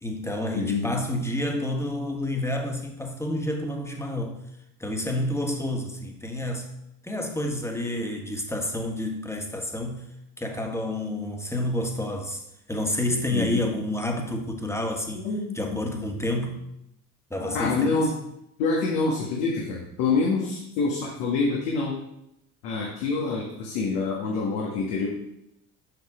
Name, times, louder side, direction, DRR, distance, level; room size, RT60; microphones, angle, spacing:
voice 1, 0.0-4.4 4.8-6.7 7.0-10.0 10.4-12.4 12.7-15.3 15.5-16.6 17.3-18.1, left 1 dB, 5° left, 3 dB, 1.6 m, -29 dB
voice 2, 0.5-0.9 13.3-13.7 15.1-15.6 17.4-18.1 18.6-22.0 22.6-25.1, left 4 dB, 75° left, -2 dB, 1.7 m, -26 dB
7.7 x 5.9 x 5.0 m, 0.81 s
hypercardioid pair, 65°, 43 cm